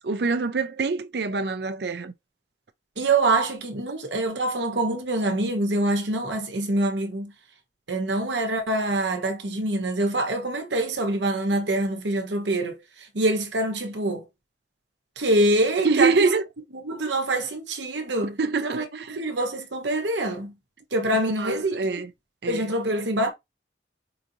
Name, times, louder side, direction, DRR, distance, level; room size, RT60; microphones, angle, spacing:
voice 1, 0.0-2.1 15.8-16.4 18.4-19.2 21.4-22.1 22.4-22.7, right 4 dB, 65° right, 0.5 m, -25 dB
voice 2, 3.0-7.3 7.9-14.2 15.2-16.3 16.8-20.5 20.9-21.8 22.5-23.3, right 2 dB, 80° right, 1.1 m, -25 dB
5.0 x 2.6 x 2.8 m
head